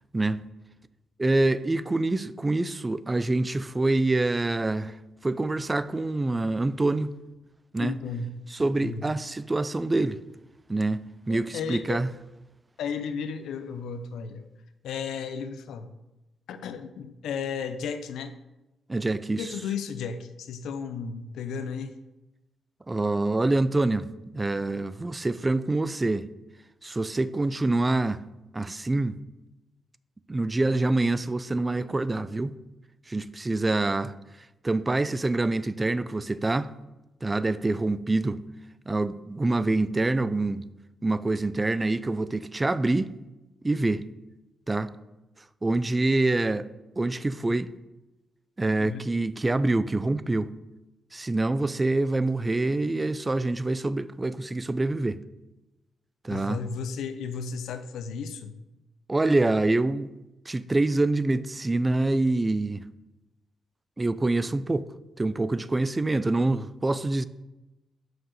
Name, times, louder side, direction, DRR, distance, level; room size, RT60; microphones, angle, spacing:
voice 1, 1.2-5.0 5.2-7.1 7.7-8.0 8.5-10.2 10.7-12.1 18.9-19.5 22.9-24.1 24.3-26.3 26.8-28.2 28.5-29.2 30.3-32.6 33.1-34.1 34.6-36.7 37.2-38.4 38.9-40.6 41.0-43.1 43.6-44.0 44.7-44.9 45.6-46.7 47.0-47.7 48.6-50.5 51.1-55.2 56.2-56.6 59.1-60.1 60.5-62.8 64.0-64.9 65.2-67.3, right 2 dB, 25° right, 0.4 m, -26 dB
voice 2, 7.8-8.3 8.8-9.1 11.3-12.0 12.8-14.5 14.8-15.9 16.5-18.3 19.4-22.0 31.8-31.9 48.8-49.0 56.3-58.6, left 6 dB, 80° left, 0.6 m, -34 dB
6.2 x 4.7 x 6.5 m
supercardioid pair, 60°, 0 cm